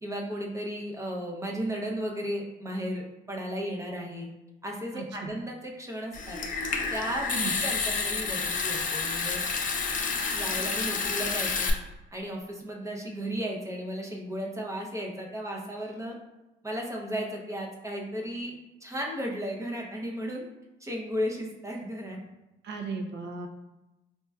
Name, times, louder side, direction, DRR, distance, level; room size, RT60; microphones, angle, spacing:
voice 1, 0.0-4.3 4.6-6.4 6.9-9.4 10.3-11.7 12.1-16.2 16.6-20.4 20.8-22.2, equal, 15° right, -1 dB, 0.6 m, -34 dB
voice 2, 4.9-5.3 7.4-7.5 22.6-23.5, right 4 dB, 60° right, 3 dB, 0.5 m, -36 dB
Water tap faucet / Sink (filling or washing) / Trickle dribble, 6.1-11.7, left 5 dB, 40° left, 0.4 m, -29 dB
4.2 x 2.2 x 2.3 m, 0.99 s
cardioid pair, 90°, 20 cm